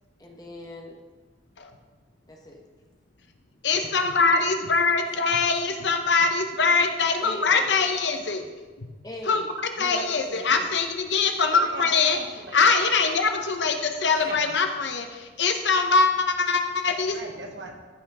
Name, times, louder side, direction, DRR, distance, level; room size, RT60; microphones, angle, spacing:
voice 1, 0.2-0.9 2.3-2.6 5.1-5.4 7.2-7.7 9.0-9.5 9.8-10.6 13.4-13.5 14.1-14.3, left 1 dB, 20° left, -1 dB, 1.3 m, -40 dB
voice 2, 3.6-8.4 8.8-8.9 9.3-12.2 12.5-17.2, left 4 dB, 75° left, 5 dB, 0.9 m, -23 dB
voice 3, 11.5-12.8 14.2-14.5 17.1-17.7, right 2 dB, 80° right, 2 dB, 1.4 m, -40 dB
14.5 x 5.6 x 3.6 m, 1.4 s
head